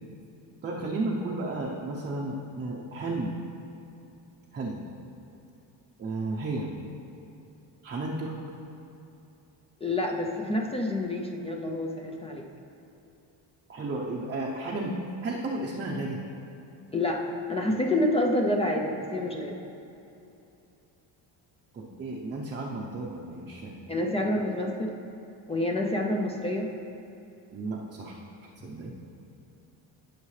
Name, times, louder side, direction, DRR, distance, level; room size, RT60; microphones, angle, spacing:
voice 1, 0.6-3.3 4.5-4.8 6.0-6.7 7.8-8.3 13.7-14.9 15.2-16.2 21.7-23.7 27.5-28.2 28.6-28.9, right 2 dB, 25° right, -3 dB, 0.7 m, -33 dB
voice 2, 9.8-12.4 16.9-19.6 23.9-24.9 25.5-26.7, left 1 dB, 15° left, 0 dB, 0.4 m, -28 dB
18.0 x 6.6 x 3.2 m, 2.8 s
cardioid pair, 170°, 45 cm